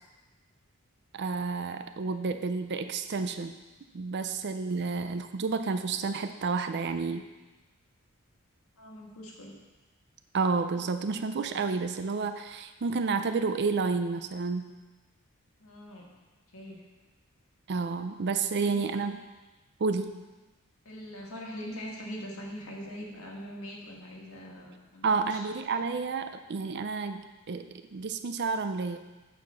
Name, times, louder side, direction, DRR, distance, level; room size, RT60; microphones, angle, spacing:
voice 1, 1.1-3.6 3.9-7.2 10.3-14.7 17.7-19.3 19.8-20.2 25.0-29.0, right 4 dB, 50° right, 9 dB, 0.5 m, -30 dB
voice 2, 8.8-9.6 15.6-16.1 16.5-16.8 18.6-18.9 20.8-25.4 25.8-25.9, equal, 70° left, -2 dB, 1.7 m, -42 dB
8.3 x 4.9 x 5.6 m, 1.2 s
head